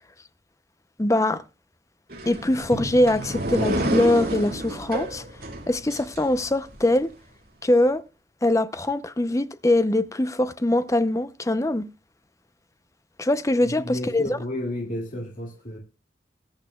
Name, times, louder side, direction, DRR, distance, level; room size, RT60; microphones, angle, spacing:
voice 1, 1.0-1.4 2.3-5.2 5.7-7.1 7.6-8.0 8.4-11.9 13.2-14.4, left 1 dB, 20° left, 0.6 m, -22 dB
sound 1, 2.1-6.8, right 1 dB, 55° right, 2.2 m, -30 dB
voice 2, 13.6-15.8, left 1 dB, 50° left, 2.3 m, -32 dB
20.0 x 8.9 x 2.3 m
head